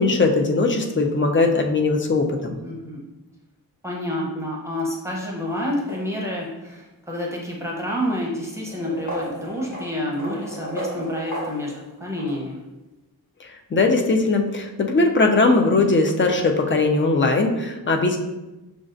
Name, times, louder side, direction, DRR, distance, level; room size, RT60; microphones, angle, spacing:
voice 1, 0.0-2.5 13.7-18.2, left 3 dB, 30° left, 3 dB, 0.5 m, -19 dB
voice 2, 2.6-3.0 3.8-12.6, left 1 dB, 5° right, -4 dB, 0.8 m, -29 dB
sound 1, 5.5-6.5 7.5-7.6 8.6-12.4, right 1 dB, 50° left, 1.4 m, -34 dB
6.3 x 2.4 x 2.5 m, 1.0 s
wide cardioid pair, 115°, 38 cm